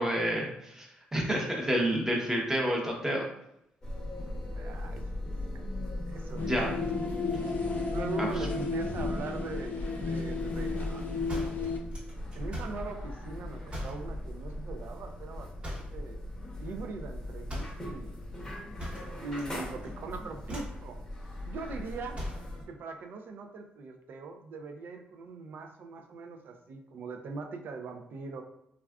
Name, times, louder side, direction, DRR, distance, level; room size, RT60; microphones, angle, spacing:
voice 1, 0.0-3.2 6.5-6.7, equal, 15° right, -1 dB, 0.8 m, -29 dB
sound 1, 3.8-22.6, left 1 dB, 15° left, 0.8 m, -39 dB
voice 2, 4.5-5.7 6.0-6.8 7.9-11.0 11.3-11.7 12.3-16.2 16.6-18.2 19.2-21.0 21.4-22.2 22.7-28.4, right 4 dB, 60° right, 5 dB, 0.4 m, -41 dB
sound 2, 6.4-11.8, left 4 dB, 45° left, 0.5 m, -33 dB
sound 3, 11.3-12.9 13.7-14.1 15.6-16.0 17.5-17.9 18.8-19.6 19.8-20.1 20.4-20.8 22.1-22.5, equal, 35° right, 1.1 m, -40 dB
3.4 x 2.3 x 2.3 m, 0.79 s
cardioid pair, 110°, 4 cm